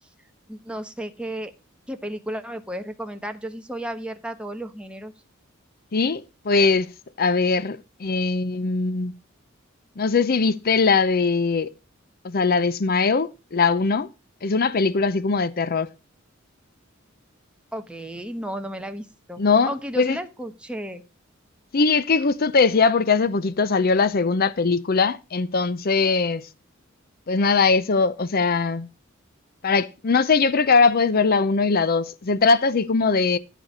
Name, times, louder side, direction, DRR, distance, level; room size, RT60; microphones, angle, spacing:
voice 1, 0.5-1.5 1.9-5.1 17.7-21.0, right 1 dB, 5° right, 1.1 m, -33 dB
voice 2, 5.9-6.9 7.2-9.1 10.0-11.7 12.2-14.1 14.4-15.9 19.4-20.2 21.7-26.4 27.3-28.9 29.6-33.4, left 4 dB, 50° left, 0.6 m, -21 dB
13.5 x 4.7 x 6.6 m
head